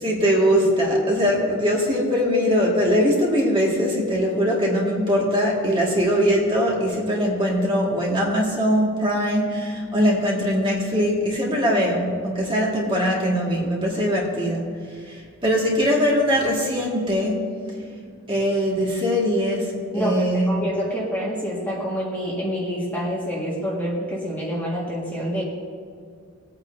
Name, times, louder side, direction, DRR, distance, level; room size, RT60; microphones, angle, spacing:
voice 1, 0.0-14.7 15.1-17.5 18.3-20.7, equal, 25° right, -4 dB, 2.0 m, -21 dB
voice 2, 19.9-25.4, equal, 10° left, -5 dB, 1.7 m, -27 dB
19.5 x 8.9 x 2.7 m, 2.2 s
head